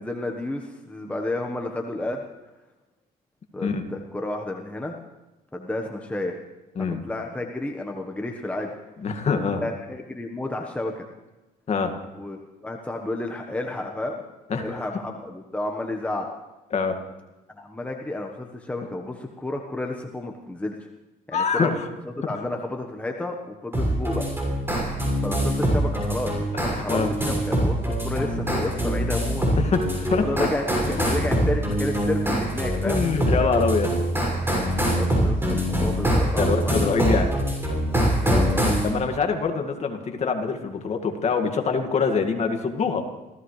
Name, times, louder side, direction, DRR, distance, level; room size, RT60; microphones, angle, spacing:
voice 1, 0.0-2.2 3.5-5.0 5.5-6.4 6.8-8.7 9.6-11.1 12.1-14.2 14.6-16.3 17.5-20.7 21.3-21.7 22.3-24.3 25.2-26.3 26.6-29.5 30.2-33.0 34.9-36.9 38.2-38.7, left 1 dB, 10° left, 2 dB, 1.3 m, -31 dB
voice 2, 9.0-9.6 11.7-11.9 14.5-14.8 16.7-17.0 21.3-21.8 26.5-27.1 29.6-30.3 32.8-33.9 36.4-37.3 38.8-43.1, left 5 dB, 40° left, 5 dB, 2.0 m, -24 dB
sound 1, 23.7-38.9, right 1 dB, 15° right, 6.2 m, -24 dB
26.0 x 16.0 x 3.3 m, 1.0 s
cardioid pair, 110°, 17 cm